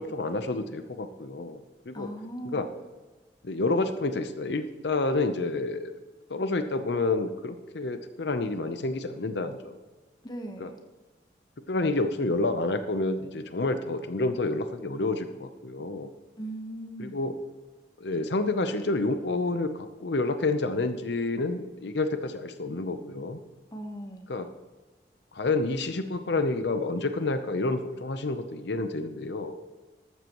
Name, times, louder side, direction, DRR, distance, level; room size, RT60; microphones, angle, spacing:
voice 1, 0.0-2.1 2.5-2.7 3.4-5.9 6.3-9.7 10.6-10.7 11.7-16.1 17.0-17.3 18.0-23.4 24.3-24.5 25.3-29.6, left 2 dB, 70° left, 9 dB, 0.7 m, -29 dB
voice 2, 1.9-2.6 10.2-10.8 16.4-17.2 23.7-24.3, right 1 dB, 20° left, 4 dB, 1.1 m, -38 dB
14.0 x 12.5 x 3.0 m, 1.2 s
head